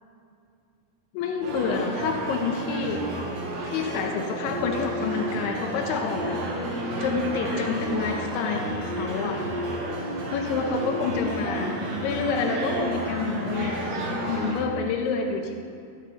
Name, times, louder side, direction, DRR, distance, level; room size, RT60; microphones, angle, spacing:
voice 1, 1.1-3.1 3.7-6.4 7.0-9.4 10.3-11.8 12.0-14.0 14.3-15.5, left 5 dB, 75° left, 3 dB, 3.3 m, -28 dB
sound 1, 1.4-14.6, right 1 dB, 85° right, 5.6 m, -31 dB
17.5 x 13.0 x 3.3 m, 2.3 s
omnidirectional pair, 5.9 m